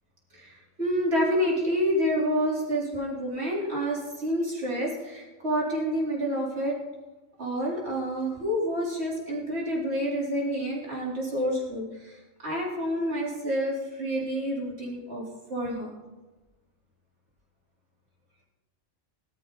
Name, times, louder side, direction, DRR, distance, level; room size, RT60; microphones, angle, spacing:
voice 1, 0.3-6.8 7.4-12.1 12.4-15.2 15.5-15.9, equal, 50° right, -4 dB, 3.9 m, -28 dB
19.0 x 12.5 x 4.0 m, 1.1 s
omnidirectional pair, 1.4 m